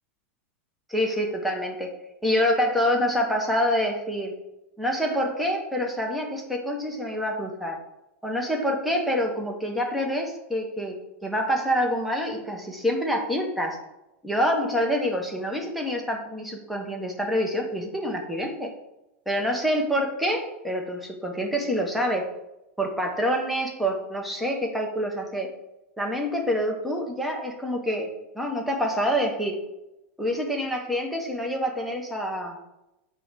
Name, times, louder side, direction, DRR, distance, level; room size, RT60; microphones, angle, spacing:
voice 1, 0.9-1.9 2.2-4.3 4.8-7.8 8.2-11.0 11.2-13.8 14.2-18.7 19.3-22.2 22.8-25.5 26.0-28.1 28.3-29.6 30.2-32.6, equal, ahead, 0 dB, 0.6 m, -26 dB
5.3 x 2.1 x 4.5 m, 0.92 s
supercardioid pair, 155°, 7 cm